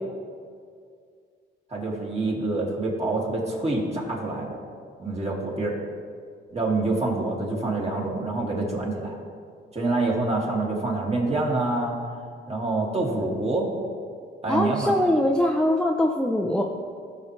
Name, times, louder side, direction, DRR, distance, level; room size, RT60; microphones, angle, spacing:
voice 1, 1.7-4.6 5.0-5.8 6.5-9.2 9.7-12.0 12.5-13.7 14.4-14.9, right 2 dB, 30° right, -3 dB, 2.4 m, -26 dB
voice 2, 14.5-16.6, left 1 dB, 5° left, 0 dB, 0.7 m, -22 dB
15.5 x 6.2 x 3.3 m, 2.2 s
cardioid pair, 90°, 20 cm